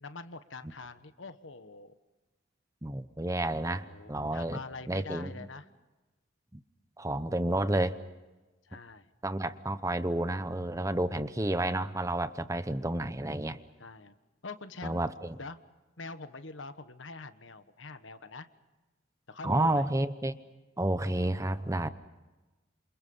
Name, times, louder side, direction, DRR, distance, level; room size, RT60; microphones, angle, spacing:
voice 1, 0.0-1.9 3.7-5.7 8.6-9.1 11.3-11.4 13.8-14.1 14.4-15.0 15.4-15.6 16.0-18.5 19.3-19.9, left 3 dB, 75° left, 11 dB, 1.3 m, -44 dB
voice 2, 2.8-4.6 4.9-5.3 7.0-8.0 9.2-13.6 14.8-15.3 19.4-20.4 20.8-21.9, right 1 dB, 15° right, 12 dB, 0.8 m, -30 dB
28.0 x 28.0 x 5.5 m, 1.2 s
head